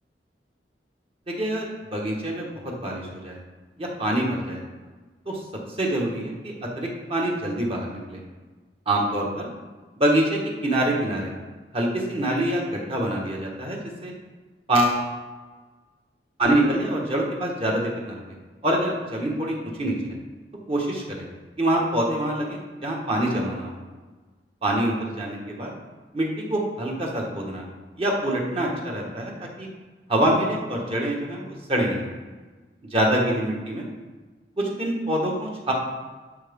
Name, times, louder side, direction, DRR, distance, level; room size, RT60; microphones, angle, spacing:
voice 1, 1.4-3.4 3.8-4.6 5.3-8.2 8.9-9.5 10.0-11.3 11.7-14.1 14.7-15.0 16.4-18.2 18.6-20.1 20.7-21.3 21.6-23.7 24.6-25.7 26.1-27.6 28.0-29.7 30.1-32.1 32.9-33.8 34.6-35.7, right 1 dB, 35° right, -1 dB, 1.5 m, -25 dB
12.0 x 4.8 x 3.7 m, 1.3 s
head